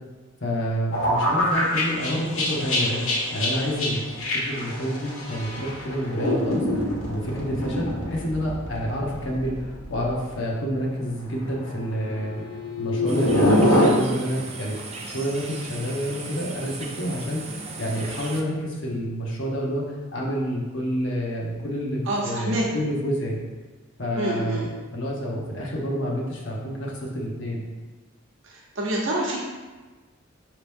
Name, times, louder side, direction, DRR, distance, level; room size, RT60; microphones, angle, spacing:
voice 1, 0.4-4.0 4.3-12.4 12.8-14.8 15.0-19.8 20.1-23.4 24.0-24.7 24.9-27.6, equal, 60° left, -2 dB, 0.9 m, -28 dB
sound 1, 0.9-10.1 10.3-10.6 11.4-13.9, left 1 dB, 80° left, 1.3 m, -25 dB
sound 2, 13.1-18.4, right 3 dB, 30° right, 0.4 m, -37 dB
voice 2, 22.1-22.7 24.2-24.7 28.4-29.4, right 1 dB, 60° right, -3 dB, 0.8 m, -27 dB
5.1 x 3.0 x 3.5 m, 1.3 s
head